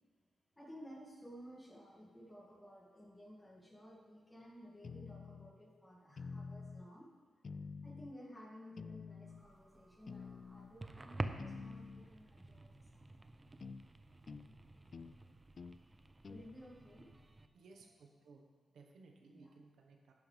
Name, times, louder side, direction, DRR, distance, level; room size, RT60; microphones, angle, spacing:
voice 1, 0.6-7.1 7.8-13.3 16.3-17.1 19.2-19.5, equal, 15° left, -3 dB, 2.4 m, -55 dB
sound 1, 4.8-5.6 6.2-6.9 7.4-8.2 8.8-9.5 10.1-10.8 11.4-12.1 13.6-13.8 14.3-14.5 14.9-15.1 15.6-15.8 16.2-16.5, left 4 dB, 45° left, 0.3 m, -48 dB
sound 2, 9.3-17.5, right 2 dB, 20° right, 0.6 m, -49 dB
voice 2, 17.5-18.4 18.7-20.1, right 4 dB, 85° right, 2 dB, 1.4 m, -60 dB
11.5 x 10.5 x 3.5 m, 1.4 s
cardioid pair, 105°, 0 cm